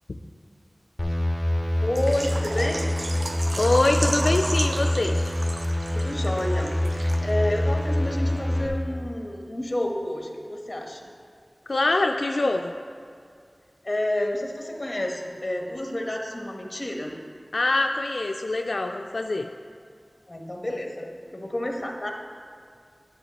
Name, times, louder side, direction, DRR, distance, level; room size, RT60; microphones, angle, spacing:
sound 1, 1.0-8.7, left 1 dB, 15° left, 1.6 m, -25 dB
voice 1, 1.8-2.9 5.9-11.1 13.8-17.1 20.3-22.1, left 1 dB, 35° left, 1 dB, 1.2 m, -29 dB
Water / Liquid, 2.0-7.6 7.8-7.9 8.4-8.5, right 2 dB, 75° right, 0.5 m, -34 dB
voice 2, 3.6-5.2 11.7-12.7 17.5-19.5, left 2 dB, 80° left, 4 dB, 0.3 m, -24 dB
10.0 x 7.3 x 4.2 m, 2.2 s
wide cardioid pair, 60°, 0 cm